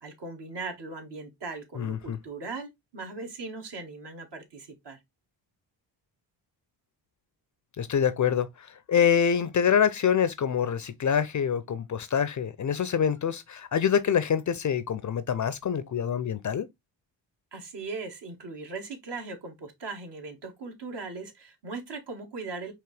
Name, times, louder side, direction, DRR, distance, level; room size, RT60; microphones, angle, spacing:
voice 1, 0.0-5.0 17.5-22.7, right 3 dB, 60° right, 1.7 m, -39 dB
voice 2, 1.8-2.2 7.8-16.7, left 8 dB, 40° left, 0.5 m, -26 dB
4.8 x 2.9 x 3.2 m
cardioid pair, 65°, 47 cm